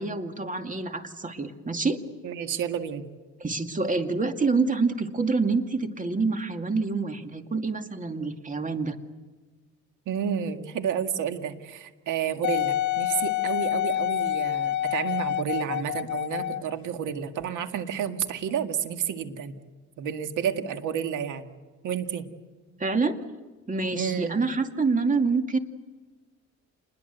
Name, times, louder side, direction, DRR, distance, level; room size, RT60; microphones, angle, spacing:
voice 1, 0.0-2.0 3.4-9.0 22.8-23.2 23.7-25.6, right 4 dB, 25° right, 6 dB, 2.3 m, -27 dB
voice 2, 2.2-3.0 10.1-19.5 20.0-21.5 21.8-22.3 23.9-24.4, right 8 dB, 85° right, 7 dB, 2.1 m, -30 dB
Wind instrument woodwind instrument, 12.4-16.7 17.4-17.5, left 13 dB, 70° left, 0.9 m, -27 dB
28.5 x 21.5 x 8.1 m, 1.3 s
cardioid pair, 90°, 30 cm